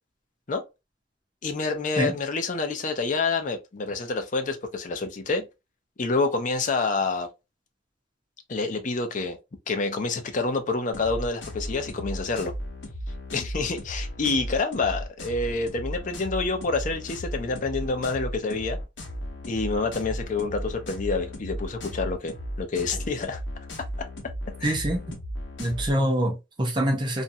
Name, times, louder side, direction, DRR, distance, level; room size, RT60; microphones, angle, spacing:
voice 1, 1.4-5.5 6.0-7.3 8.5-9.4 9.7-12.5 13.3-18.8 19.5-23.4 24.6-24.8, left 3 dB, 45° left, 0.5 m, -28 dB
sound 1, 10.9-25.9, equal, 75° left, 0.8 m, -35 dB
voice 2, 24.6-25.2 25.6-27.2, right 1 dB, 25° right, 0.6 m, -25 dB
2.5 x 2.2 x 2.6 m
head